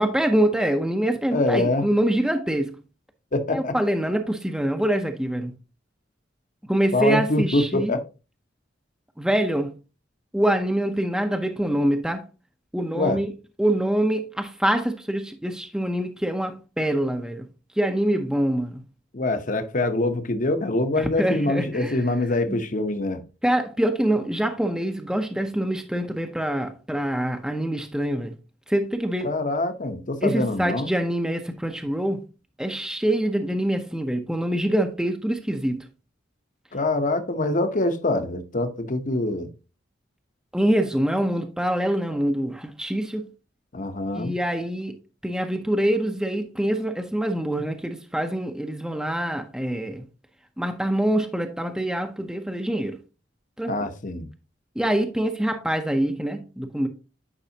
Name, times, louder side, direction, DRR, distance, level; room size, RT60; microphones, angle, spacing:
voice 1, 0.0-2.8 3.5-5.5 6.7-7.9 9.2-9.7 10.3-12.2 12.7-13.3 13.6-17.5 17.8-18.8 21.0-21.9 23.4-28.3 28.7-29.3 30.2-32.2 32.6-35.9 40.5-43.3 44.1-44.9 45.2-50.0 50.6-53.0 53.6-53.7 54.8-56.9, right 1 dB, 5° right, 0.6 m, -25 dB
voice 2, 1.3-1.9 3.3-3.7 6.9-8.0 12.9-13.2 19.1-23.2 29.2-30.9 36.7-39.5 43.7-44.3 53.7-54.3, left 2 dB, 45° left, 0.9 m, -24 dB
9.9 x 5.4 x 2.8 m
head